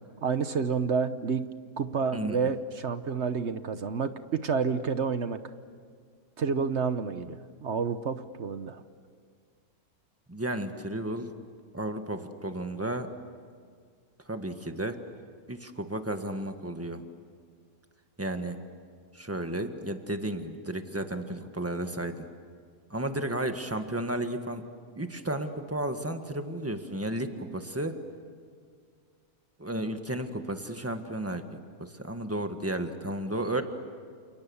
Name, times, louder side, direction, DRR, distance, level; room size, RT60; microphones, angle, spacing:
voice 1, 0.2-1.5 1.8-5.5 6.4-8.8, right 5 dB, 50° right, 11 dB, 1.2 m, -29 dB
voice 2, 10.3-11.3 11.7-13.1 14.3-15.0 15.5-17.0 18.2-18.6 19.1-22.3 22.9-24.6 25.0-28.0 29.6-31.4 31.8-33.6, right 1 dB, 10° right, 7 dB, 1.5 m, -33 dB
29.5 x 28.5 x 7.2 m, 2.1 s
omnidirectional pair, 1.6 m